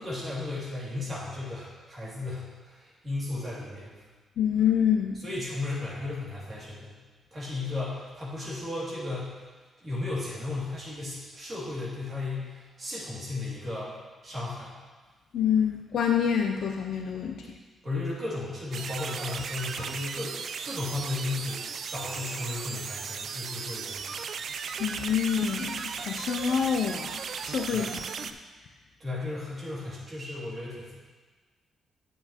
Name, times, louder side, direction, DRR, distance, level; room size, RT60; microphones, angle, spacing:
voice 1, 0.0-3.9 5.2-6.9 7.3-9.3 9.8-14.0 14.2-14.7 17.8-24.2 27.7-27.9 29.0-30.9, left 2 dB, 25° right, -8 dB, 2.4 m, -35 dB
voice 2, 4.4-5.2 15.3-17.5 24.8-28.0, left 8 dB, 60° left, 2 dB, 0.5 m, -27 dB
sound 1, 18.7-28.3, right 6 dB, 50° right, 0.3 m, -36 dB
9.1 x 7.6 x 2.9 m, 1.4 s
wide cardioid pair, 175°, 0 cm